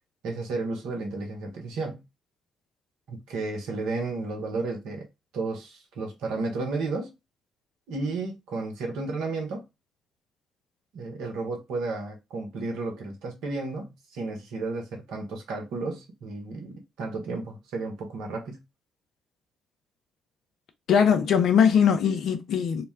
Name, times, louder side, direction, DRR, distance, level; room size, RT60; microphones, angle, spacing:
voice 1, 0.2-2.0 3.1-5.1 5.3-7.1 7.9-9.6 10.9-18.6, right 3 dB, 70° right, 0.8 m, -33 dB
voice 2, 20.9-22.8, left 7 dB, 65° left, 0.5 m, -21 dB
2.3 x 2.1 x 3.4 m
hypercardioid pair, 45°, 0 cm